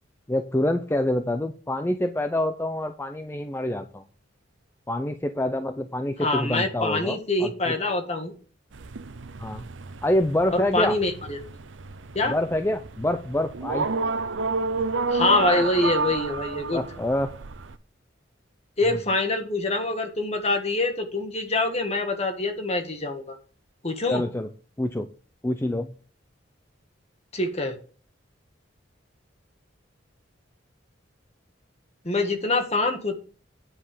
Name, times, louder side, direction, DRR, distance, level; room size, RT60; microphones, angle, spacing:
voice 1, 0.3-4.0 4.9-7.8 9.4-9.7 10.0-11.0 12.3-13.9 16.7-17.3 18.9-19.0 24.1-24.5 24.8-25.1 25.4-25.9, left 1 dB, 10° left, 7 dB, 0.5 m, -26 dB
voice 2, 6.2-8.3 10.5-11.4 12.1-12.4 15.1-16.8 18.8-23.4 23.8-24.2 27.3-27.8 32.0-33.2, left 2 dB, 35° left, 5 dB, 1.7 m, -25 dB
sound 1, 8.7-17.8, right 4 dB, 75° right, 0.7 m, -31 dB
9.8 x 5.6 x 6.6 m, 0.39 s
head